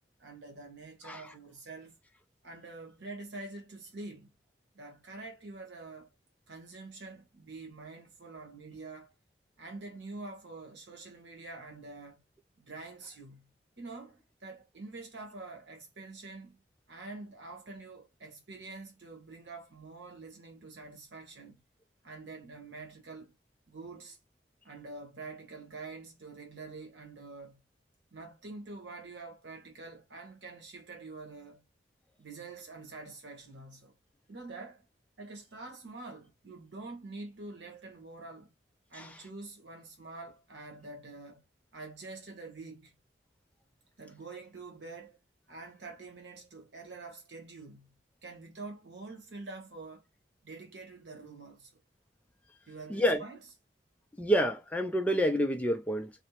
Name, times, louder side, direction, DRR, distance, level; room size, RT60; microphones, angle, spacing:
voice 1, 0.2-2.0 2.4-4.3 4.7-6.1 6.5-9.1 9.6-12.2 12.6-13.5 13.8-16.6 16.9-21.6 22.0-23.3 23.7-24.2 24.6-27.6 28.1-31.6 32.2-33.9 34.3-34.9 35.2-38.5 38.9-41.4 41.7-42.9 44.0-45.2 45.5-47.9 48.2-50.0 50.4-51.7 52.7-53.4, right 3 dB, 75° right, 1.0 m, -46 dB
voice 2, 52.9-53.2 54.2-56.1, equal, 10° left, 0.4 m, -28 dB
2.6 x 2.0 x 2.9 m
head